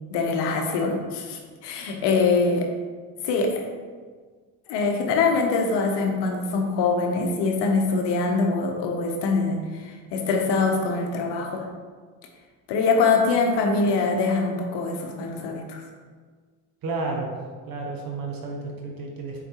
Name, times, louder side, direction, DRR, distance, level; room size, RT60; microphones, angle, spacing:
voice 1, 0.1-2.7 3.2-3.6 4.7-11.7 12.7-15.8, left 4 dB, 70° left, 3 dB, 0.8 m, -23 dB
voice 2, 16.8-17.3 17.7-19.4, right 3 dB, 55° right, 1 dB, 0.8 m, -31 dB
4.5 x 3.8 x 2.9 m, 1.5 s
supercardioid pair, 70°, 43 cm